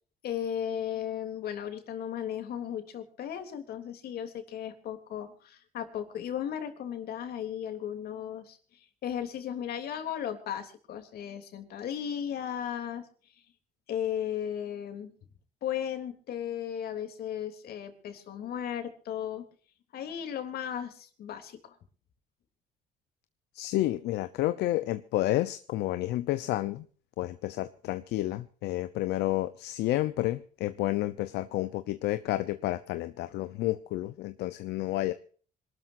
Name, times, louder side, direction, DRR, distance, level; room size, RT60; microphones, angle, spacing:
voice 1, 0.2-13.1 13.9-15.1 15.6-19.4 19.9-21.7, left 9 dB, 65° left, 6 dB, 3.2 m, -35 dB
voice 2, 23.5-26.8 27.2-35.1, left 16 dB, 80° left, 12 dB, 0.8 m, -30 dB
26.5 x 13.0 x 2.7 m, 0.42 s
cardioid pair, 110°, 17 cm